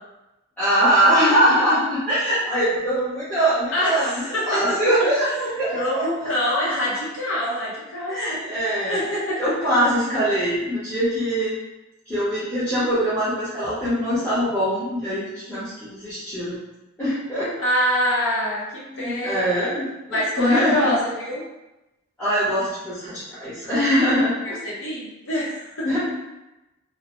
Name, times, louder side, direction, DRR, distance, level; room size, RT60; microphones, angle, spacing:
voice 1, 0.6-6.3 8.1-9.0 9.4-11.6 12.1-16.6 17.0-17.5 18.9-20.9 22.2-24.6 25.8-26.0, equal, 10° left, -15 dB, 0.8 m, -22 dB
voice 2, 3.7-5.1 5.7-8.5 8.9-9.7 17.6-19.4 20.1-21.4 24.4-26.0, equal, 65° left, -7 dB, 0.8 m, -25 dB
2.7 x 2.1 x 3.0 m, 0.99 s
head